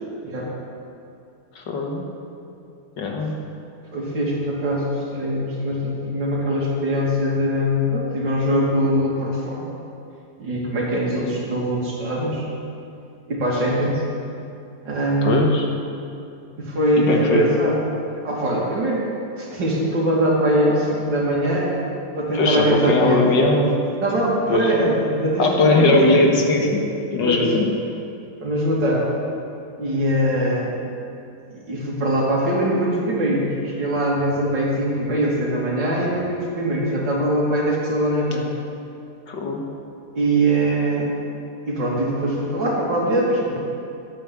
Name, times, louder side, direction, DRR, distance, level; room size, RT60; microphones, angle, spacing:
voice 1, 1.6-2.0 3.0-3.4 15.2-15.7 17.0-17.5 22.3-23.8 24.5-24.7 25.4-26.8 27.1-27.7 39.3-39.6, left 2 dB, 75° left, 1 dB, 2.1 m, -19 dB
voice 2, 3.9-9.7 10.4-12.5 13.3-14.0 14.8-15.5 16.6-17.8 18.2-19.0 19.4-21.7 22.1-23.2 23.5-23.6 24.0-26.3 27.2-27.5 28.4-29.1 29.8-30.8 31.5-38.5 40.1-41.2 41.7-43.6, right 1 dB, 75° right, -4 dB, 3.1 m, -22 dB
12.0 x 8.9 x 7.2 m, 2.6 s
omnidirectional pair, 2.0 m